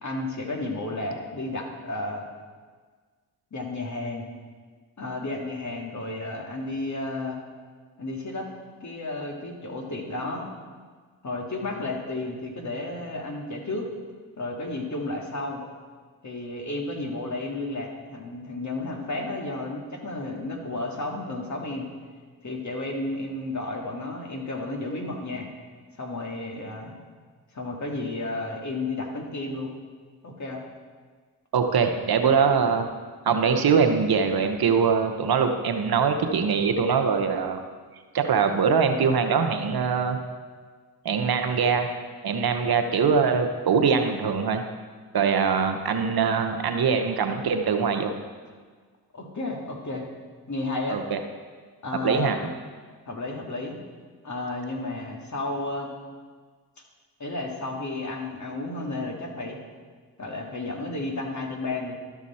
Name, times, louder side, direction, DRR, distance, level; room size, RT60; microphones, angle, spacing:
voice 1, 0.0-2.2 3.5-4.3 5.0-7.4 8.0-8.5 8.8-10.5 11.2-13.9 14.4-15.6 16.2-21.9 22.4-25.5 26.0-27.0 27.5-29.7 30.2-30.6 49.1-50.1 50.5-51.0 51.8-52.3 53.1-53.8 54.2-55.9 57.2-59.6 60.2-62.0, left 2 dB, 45° left, 1 dB, 2.0 m, -32 dB
voice 2, 31.5-32.9 33.2-37.6 38.1-40.2 41.0-41.9 42.2-44.6 45.1-48.1 50.9-51.2 52.0-52.4, right 6 dB, 60° right, 6 dB, 1.0 m, -22 dB
12.5 x 6.0 x 4.3 m, 1.5 s
supercardioid pair, 45°, 42 cm